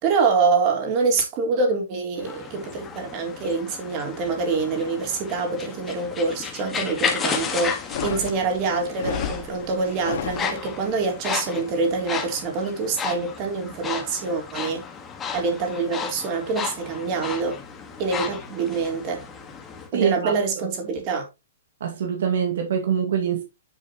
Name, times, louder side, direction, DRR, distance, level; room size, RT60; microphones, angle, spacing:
voice 1, 0.0-14.8 15.3-17.6 18.0-19.2 19.9-21.3, right 4 dB, 35° right, 3.8 m, -25 dB
sound 1, 2.2-19.9, left 6 dB, 15° left, 1.8 m, -33 dB
sound 2, 7.7-11.0, left 8 dB, 55° left, 1.9 m, -33 dB
voice 2, 19.9-20.7 21.8-23.4, right 8 dB, 70° right, 2.2 m, -24 dB
10.0 x 6.6 x 3.1 m
hypercardioid pair, 150°, 0 cm